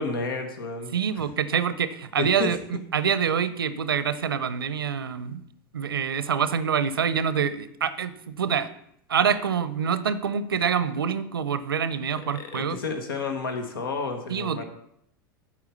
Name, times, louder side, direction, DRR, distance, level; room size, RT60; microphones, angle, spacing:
voice 1, 0.0-0.9 2.2-2.5 12.3-14.6, left 4 dB, 80° left, 5 dB, 1.3 m, -31 dB
voice 2, 0.9-5.4 5.7-8.7 9.1-12.8 14.3-14.6, right 7 dB, 90° right, 14 dB, 0.6 m, -26 dB
8.4 x 4.8 x 7.0 m, 0.73 s
hypercardioid pair, 90°, 12 cm